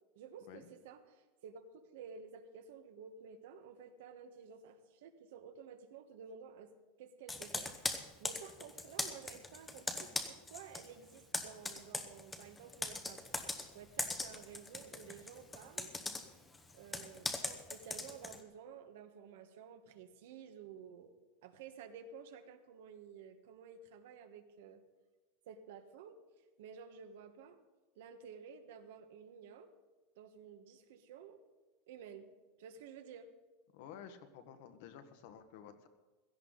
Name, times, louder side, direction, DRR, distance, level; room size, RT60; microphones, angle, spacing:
voice 1, 0.1-6.7 7.0-13.2 13.7-15.9 16.7-24.8 25.4-26.2 26.6-27.6 27.9-29.7 30.2-31.4 31.9-32.3 32.6-33.3, right 7 dB, 70° right, 7 dB, 1.4 m, -53 dB
Computer keyboard, 7.3-10.9 11.1-18.4, left 3 dB, 10° left, 0.9 m, -41 dB
voice 2, 33.7-35.9, left 8 dB, 55° left, 8 dB, 1.4 m, -52 dB
16.5 x 14.5 x 4.0 m, 1.2 s
supercardioid pair, 170°, 0 cm